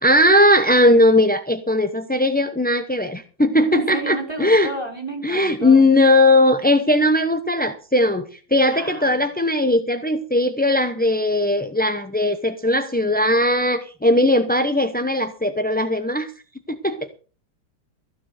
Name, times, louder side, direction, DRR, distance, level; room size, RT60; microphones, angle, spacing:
voice 1, 0.0-4.7 5.2-8.3 8.5-16.3 16.7-17.2, left 1 dB, 15° left, 8 dB, 0.4 m, -18 dB
voice 2, 3.7-5.9 8.7-9.1, right 2 dB, 15° right, 3 dB, 5.0 m, -31 dB
15.0 x 7.1 x 6.5 m, 0.37 s
omnidirectional pair, 1.8 m